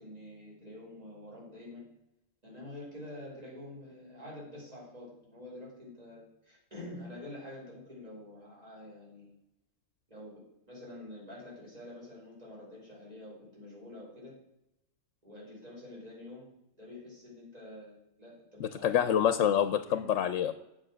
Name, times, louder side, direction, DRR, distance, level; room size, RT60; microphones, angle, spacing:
voice 1, 0.0-1.9 2.4-9.3 10.1-14.4 15.2-16.5 16.8-19.1 19.8-20.1, left 1 dB, 30° right, -5 dB, 5.2 m, -47 dB
voice 2, 18.6-20.5, left 9 dB, 75° left, 11 dB, 1.0 m, -27 dB
10.0 x 7.6 x 6.2 m, 0.88 s
omnidirectional pair, 1.3 m